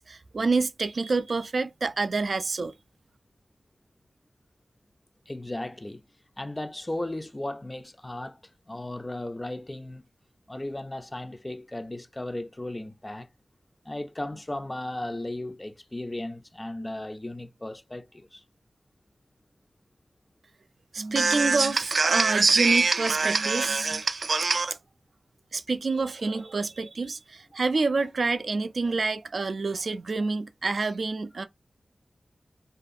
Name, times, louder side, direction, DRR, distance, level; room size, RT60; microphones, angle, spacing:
voice 1, 0.0-2.7 20.9-24.8 25.5-31.4, right 4 dB, 70° right, 0.3 m, -26 dB
voice 2, 5.3-6.0 6.4-8.4 8.7-10.0 10.5-13.3 13.9-18.4, left 1 dB, 20° left, 0.3 m, -36 dB
2.5 x 2.3 x 2.5 m
wide cardioid pair, 85°, 0 cm